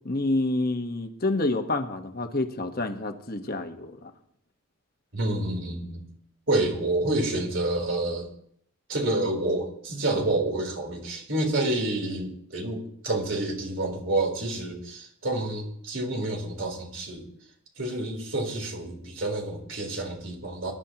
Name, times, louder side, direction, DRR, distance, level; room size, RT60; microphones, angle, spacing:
voice 1, 0.0-4.1, left 2 dB, 45° left, 6 dB, 1.2 m, -28 dB
voice 2, 5.1-6.0 6.5-8.3 8.9-17.3 17.8-20.7, right 2 dB, 60° right, 1 dB, 3.6 m, -28 dB
23.5 x 11.5 x 2.9 m, 0.67 s
head